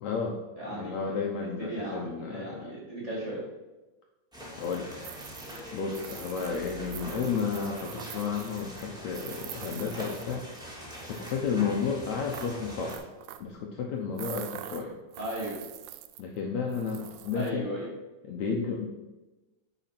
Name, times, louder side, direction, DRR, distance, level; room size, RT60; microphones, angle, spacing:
voice 1, 0.0-0.4 0.7-2.7 4.6-5.1 5.7-10.4 11.1-13.0 13.4-15.0 16.2-17.7 18.2-18.9, left 5 dB, 70° left, 0 dB, 1.8 m, -32 dB
voice 2, 0.6-1.1 1.4-3.4 15.2-15.6 17.3-17.9, right 1 dB, 25° right, -5 dB, 2.2 m, -36 dB
sound 1, 4.3-13.0, equal, ahead, 1.6 m, -43 dB
sound 2, 4.6-10.6 10.9-11.4 12.3-13.6 14.1-16.4 16.7-17.5, right 12 dB, 90° right, 1.7 m, -45 dB
9.4 x 5.1 x 5.9 m, 1.1 s
omnidirectional pair, 4.0 m